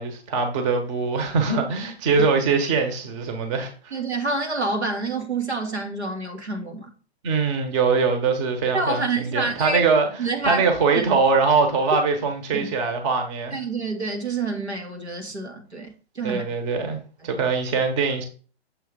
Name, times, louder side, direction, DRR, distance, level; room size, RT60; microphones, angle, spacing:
voice 1, 0.0-3.9 7.2-10.1 10.4-13.6 16.2-17.0 17.2-18.2, right 4 dB, 30° right, 1.2 m, -22 dB
voice 2, 3.9-6.9 8.7-9.8 10.2-10.6 10.9-11.0 12.5-12.7 13.5-16.4 17.2-17.4, right 3 dB, 90° right, 1.8 m, -28 dB
7.2 x 3.3 x 5.0 m
figure-of-eight pair, 120°, 32 cm